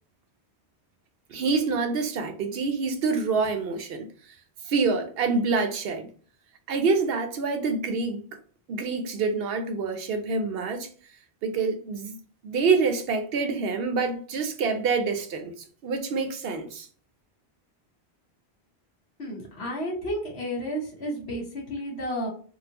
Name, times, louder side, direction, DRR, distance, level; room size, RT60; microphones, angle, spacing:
voice 1, 1.3-4.1 4.7-6.1 6.7-8.4 8.7-10.9 11.4-12.2 12.4-15.5 15.8-16.9, right 4 dB, 70° right, 0.8 m, -26 dB
voice 2, 19.2-22.3, equal, 75° left, 1.4 m, -32 dB
3.8 x 2.1 x 2.9 m
omnidirectional pair, 1.1 m